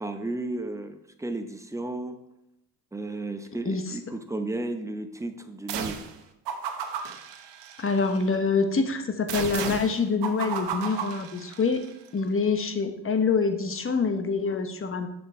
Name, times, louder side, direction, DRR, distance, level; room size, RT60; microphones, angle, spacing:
voice 1, 0.0-2.2 2.9-6.1, right 2 dB, 5° right, 7 dB, 0.8 m, -33 dB
voice 2, 3.6-3.9 7.8-11.8 12.1-15.1, left 4 dB, 30° left, 8 dB, 1.0 m, -26 dB
sound 1, 5.7-6.2 6.5-8.2 9.3-11.9, right 7 dB, 65° right, 1.1 m, -34 dB
7.2 x 6.5 x 4.4 m, 0.82 s
supercardioid pair, 80°, 46 cm